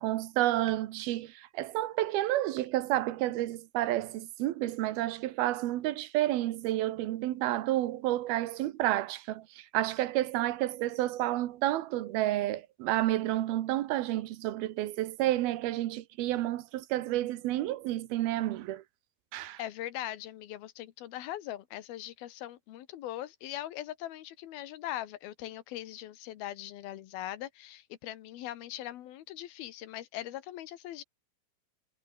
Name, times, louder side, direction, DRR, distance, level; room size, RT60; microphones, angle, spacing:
voice 1, 0.0-18.8 19.3-19.6, right 15 dB, 85° right, 3.0 m, -30 dB
voice 2, 19.6-31.0, left 13 dB, 80° left, 3.2 m, -40 dB
omnidirectional pair, 4.3 m